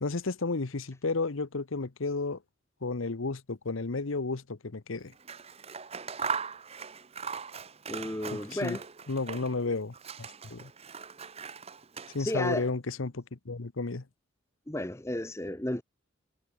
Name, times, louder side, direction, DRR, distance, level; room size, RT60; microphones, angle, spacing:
voice 1, 0.0-2.4 2.8-5.1 8.5-8.8 9.1-10.7 12.1-14.0, left 3 dB, 75° left, 1.0 m, -32 dB
Scissors, 5.1-9.6 9.9-12.5, right 6 dB, 30° right, 1.0 m, -39 dB
voice 2, 7.9-8.8 12.2-12.7 14.7-15.8, left 1 dB, 15° left, 1.0 m, -33 dB
head